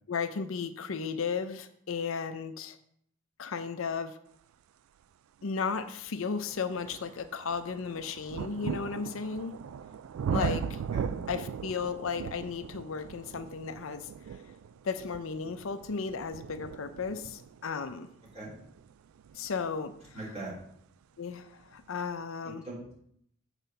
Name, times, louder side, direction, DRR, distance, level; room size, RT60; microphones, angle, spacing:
voice 1, 0.1-2.8 3.4-4.2 5.4-9.6 10.3-10.6 11.3-14.1 14.8-18.1 19.3-19.9 21.2-22.6, left 5 dB, 70° left, 10 dB, 0.5 m, -34 dB
sound 1, 5.4-5.5 6.1-20.8 21.7-21.8, right 7 dB, 80° right, 0.3 m, -39 dB
voice 2, 20.1-20.5 22.6-23.0, right 3 dB, 30° right, -5 dB, 3.2 m, -38 dB
7.5 x 4.0 x 6.7 m, 0.68 s
head